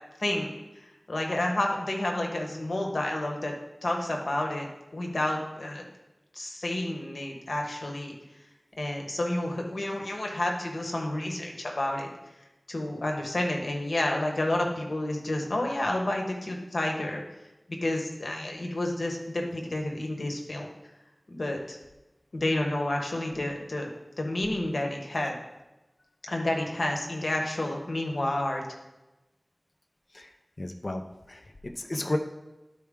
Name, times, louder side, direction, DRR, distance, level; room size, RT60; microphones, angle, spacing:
voice 1, 0.2-0.5 1.1-3.5 3.8-4.7 4.9-5.9 6.3-8.1 8.8-12.1 12.7-17.2 17.8-20.7 21.3-21.8 22.3-23.9 24.2-25.3 26.2-28.6, left 1 dB, 90° left, 1 dB, 1.1 m, -30 dB
voice 2, 30.6-31.0 31.3-32.2, left 2 dB, 55° left, 5 dB, 0.6 m, -32 dB
11.5 x 4.5 x 3.6 m, 1.0 s
wide cardioid pair, 60°, 0 cm